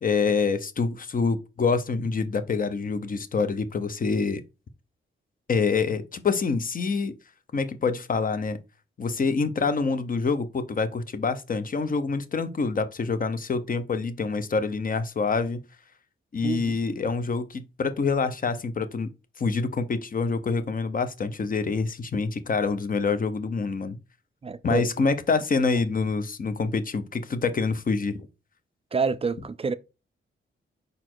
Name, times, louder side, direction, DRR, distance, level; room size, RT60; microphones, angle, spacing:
voice 1, 0.0-4.4 5.5-7.1 7.5-8.6 9.0-15.6 16.3-19.1 19.4-24.0 24.6-28.3, left 4 dB, 40° left, 0.7 m, -26 dB
voice 2, 16.4-16.8 24.4-24.8 28.9-29.7, right 5 dB, 30° right, 0.4 m, -27 dB
5.0 x 4.2 x 4.5 m
wide cardioid pair, 125°, 21 cm